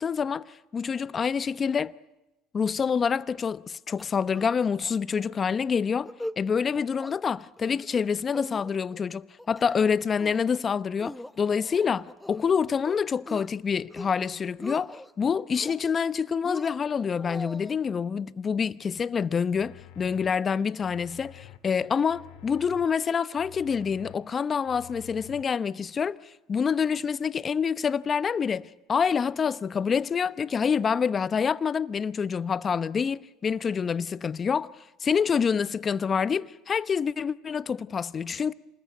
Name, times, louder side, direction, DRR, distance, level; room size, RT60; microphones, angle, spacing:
voice 1, 0.0-1.9 2.5-6.1 6.4-34.7 35.0-38.5, left 6 dB, 35° left, 0.9 m, -27 dB
sound 1, 4.0-4.5 4.8-4.9 5.3-5.5 5.9-6.4 6.7-7.2 7.6-8.0 8.3-9.0 9.4-9.9 10.2-10.6 11.0-12.5 12.8-13.5 13.8-14.2 14.5-15.1 15.5-16.1 16.4-17.8, left 1 dB, 5° left, 1.0 m, -41 dB
sound 2, 19.0-19.1 19.5-20.3 20.8-21.6 22.1-22.9 23.4-24.2 24.6-25.4, left 13 dB, 75° left, 1.9 m, -49 dB
27.5 x 21.0 x 9.4 m
supercardioid pair, 80°, 0 cm